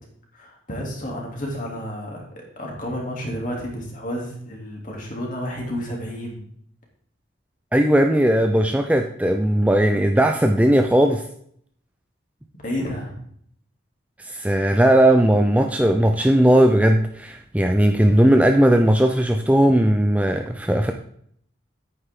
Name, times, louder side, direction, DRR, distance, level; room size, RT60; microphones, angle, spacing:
voice 1, 0.3-2.2 2.6-6.4 12.6-13.2, equal, 40° left, -1 dB, 3.1 m, -31 dB
voice 2, 7.7-11.2 14.3-20.9, right 1 dB, 5° right, 4 dB, 0.5 m, -17 dB
10.0 x 9.2 x 3.8 m, 0.65 s
head